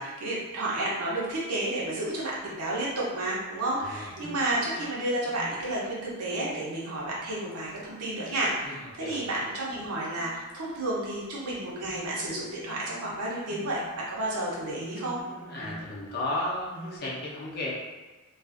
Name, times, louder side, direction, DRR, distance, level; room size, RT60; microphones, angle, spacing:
voice 1, 0.0-15.2, right 1 dB, 80° right, -5 dB, 0.7 m, -31 dB
sound 1, 4.1-16.4 16.7-17.0, right 1 dB, 50° right, 0.5 m, -49 dB
voice 2, 8.6-9.2 15.5-17.7, left 2 dB, 45° left, -4 dB, 0.6 m, -34 dB
2.4 x 2.4 x 2.4 m, 1.2 s
head